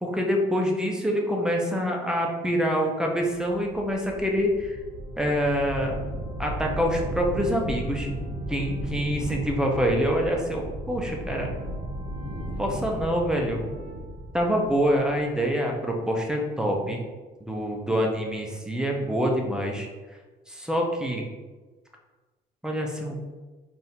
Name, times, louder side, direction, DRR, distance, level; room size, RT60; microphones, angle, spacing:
voice 1, 0.0-4.8 5.2-6.0 6.4-8.1 8.5-11.5 12.6-13.6 14.3-17.0 17.4-19.9 20.5-21.2 22.6-23.2, equal, 5° right, 0 dB, 0.7 m, -26 dB
sound 1, 3.5-15.5, right 1 dB, 85° right, 1.3 m, -35 dB
3.6 x 2.7 x 4.3 m, 1.3 s
cardioid pair, 110°, 17 cm